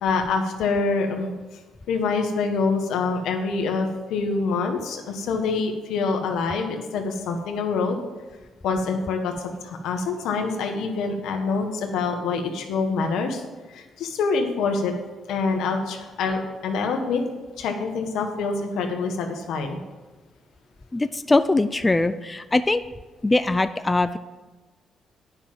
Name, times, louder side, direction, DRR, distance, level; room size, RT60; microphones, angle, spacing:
voice 1, 0.0-1.3 1.9-7.9 8.6-9.3 9.6-13.4 13.7-14.9 15.3-17.2 17.6-19.8, left 4 dB, 85° left, 4 dB, 1.6 m, -25 dB
voice 2, 20.9-22.8 23.2-24.2, left 2 dB, 20° left, 11 dB, 0.4 m, -21 dB
9.9 x 6.2 x 7.6 m, 1.2 s
cardioid pair, 90°, 0 cm